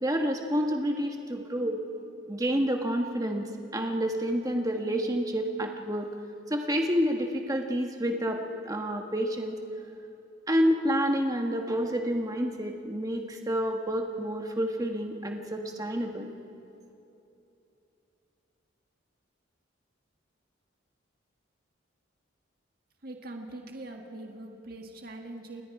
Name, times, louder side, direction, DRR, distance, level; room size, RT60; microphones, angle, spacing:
voice 1, 0.0-1.8 2.3-6.1 6.5-9.6 10.5-16.3, equal, 20° right, 3 dB, 1.4 m, -29 dB
voice 2, 23.0-25.6, right 2 dB, 45° right, 2 dB, 1.8 m, -42 dB
29.0 x 21.0 x 4.8 m, 2.9 s
head